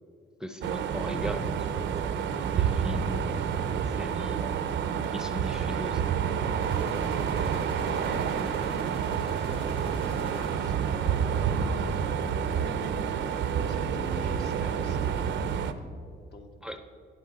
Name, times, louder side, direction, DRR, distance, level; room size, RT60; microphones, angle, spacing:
voice 1, 0.4-4.5 5.1-6.0 16.6-16.8, equal, 5° right, 7 dB, 0.6 m, -39 dB
sound 1, 0.6-15.7, right 7 dB, 70° right, 0.6 m, -29 dB
sound 2, 6.6-11.4, left 2 dB, 25° left, 0.9 m, -46 dB
voice 2, 7.3-9.4 9.7-15.4 16.3-16.5, left 3 dB, 55° left, 4 dB, 1.3 m, -47 dB
10.0 x 8.4 x 5.3 m, 2.2 s
cardioid pair, 90°, 20 cm